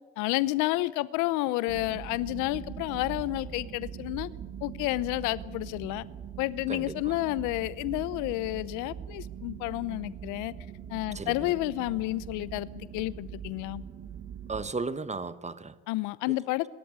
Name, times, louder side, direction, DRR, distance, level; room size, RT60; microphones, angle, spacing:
voice 1, 0.2-4.3 4.6-6.0 6.4-10.5 10.9-13.8 15.9-16.7, left 18 dB, 75° left, 0.8 m, -30 dB
sound 1, 1.7-14.7, right 8 dB, 50° right, 1.7 m, -42 dB
voice 2, 6.7-7.2 11.1-11.5 14.5-15.8 16.3-16.4, right 4 dB, 20° right, 1.4 m, -35 dB
26.5 x 13.5 x 8.9 m
hypercardioid pair, 70°, 31 cm